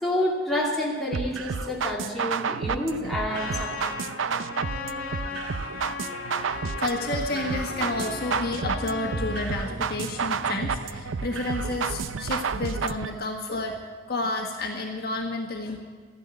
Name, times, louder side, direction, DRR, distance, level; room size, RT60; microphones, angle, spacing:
voice 1, 0.0-3.9, left 1 dB, ahead, -5 dB, 2.5 m, -28 dB
sound 1, 1.1-13.1, right 5 dB, 90° right, 0.5 m, -31 dB
Trumpet, 3.3-9.5, left 5 dB, 90° left, 1.5 m, -37 dB
Wind instrument woodwind instrument, 3.8-11.4, right 1 dB, 40° right, 1.2 m, -45 dB
voice 2, 6.8-13.8 14.1-15.8, left 2 dB, 50° left, 1 dB, 1.6 m, -30 dB
14.0 x 11.0 x 8.5 m, 1.5 s
head